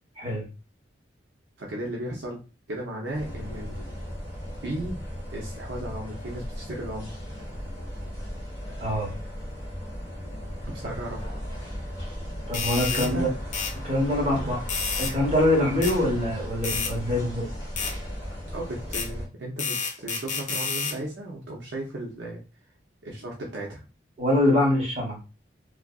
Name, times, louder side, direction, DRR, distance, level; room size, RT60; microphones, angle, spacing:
voice 1, 1.6-2.4 2.7-3.8 4.6-5.0 5.3-7.1 10.6-11.3 12.9-13.3 14.3-14.5 18.5-22.4 23.0-23.8, right 1 dB, 65° right, -1 dB, 0.6 m, -35 dB
sound 1, 3.1-19.3, equal, 20° left, 0.9 m, -36 dB
voice 2, 8.8-9.1 10.8-10.9 12.5-13.3 13.8-14.6 15.0-17.5 24.2-25.2, left 1 dB, 30° right, -3 dB, 1.0 m, -24 dB
sound 2, 12.5-13.1 13.5-13.7 14.7-15.1 15.8-16.0 16.6-16.9 17.8-17.9 18.9-19.1 19.6-21.0, left 5 dB, 40° left, 0.5 m, -29 dB
2.6 x 2.3 x 2.3 m, 0.31 s
head